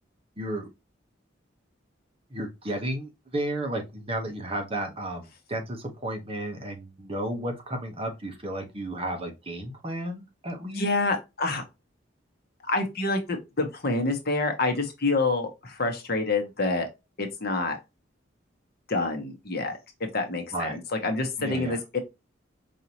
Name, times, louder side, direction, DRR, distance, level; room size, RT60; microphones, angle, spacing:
voice 1, 0.4-0.7 2.3-10.8 20.5-20.8 21.4-21.8, right 1 dB, 30° right, 1.0 m, -33 dB
voice 2, 10.7-11.7 12.7-16.9 17.2-17.8 18.9-19.8 20.1-22.0, left 3 dB, 55° left, 1.1 m, -27 dB
5.1 x 2.7 x 2.8 m
head